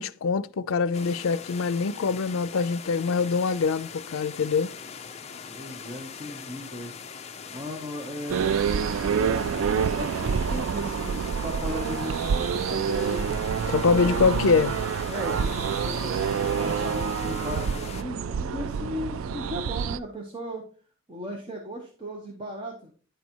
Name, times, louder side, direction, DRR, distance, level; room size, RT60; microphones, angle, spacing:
voice 1, 0.0-4.7 13.7-14.8, left 5 dB, 90° left, 0.4 m, -24 dB
sound 1, 0.9-18.0, left 6 dB, 30° left, 0.4 m, -41 dB
voice 2, 5.5-6.9 7.5-8.6 8.9-13.2 14.0-14.2 15.1-20.6 21.1-22.9, equal, 25° right, 1.1 m, -36 dB
sound 2, 8.3-20.0, right 7 dB, 85° right, 0.3 m, -27 dB
10.5 x 4.1 x 4.5 m
head